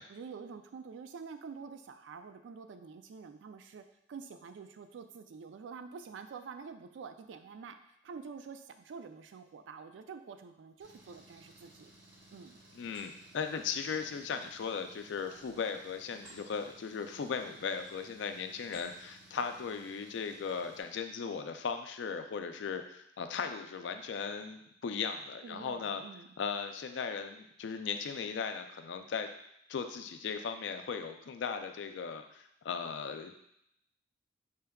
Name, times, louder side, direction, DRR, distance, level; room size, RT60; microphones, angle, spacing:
voice 1, 0.1-7.8 8.0-11.9 12.3-12.6 25.4-26.3, right 5 dB, 85° right, 8 dB, 0.3 m, -47 dB
Engine, 10.8-20.8, right 1 dB, 70° right, 0.8 m, -59 dB
sound 1, 11.8-12.4 12.8-13.1 15.3-16.5 16.9-17.1 17.7-18.1 18.6-19.0, right 1 dB, 25° right, 1.5 m, -57 dB
voice 2, 12.8-26.0 26.4-29.3 29.7-33.3, left 6 dB, 75° left, 7 dB, 0.4 m, -37 dB
4.5 x 3.4 x 2.2 m, 0.76 s
head